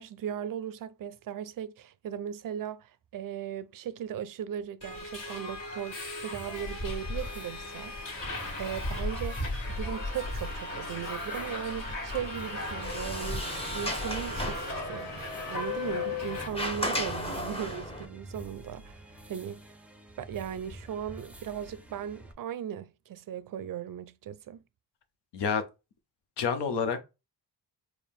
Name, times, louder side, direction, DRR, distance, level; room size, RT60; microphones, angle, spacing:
voice 1, 0.0-8.3 8.6-19.6 20.2-24.6, right 9 dB, 55° right, 0.5 m, -38 dB
Subway metro underground, 4.8-16.5, left 2 dB, 50° left, 1.9 m, -36 dB
sound 1, 6.3-22.3, right 1 dB, 5° right, 0.5 m, -49 dB
Sliding door, 12.5-18.0, equal, 15° left, 0.9 m, -36 dB
voice 2, 25.3-25.6 26.4-27.0, left 6 dB, 75° left, 0.9 m, -28 dB
4.6 x 2.2 x 3.5 m
cardioid pair, 100°, 41 cm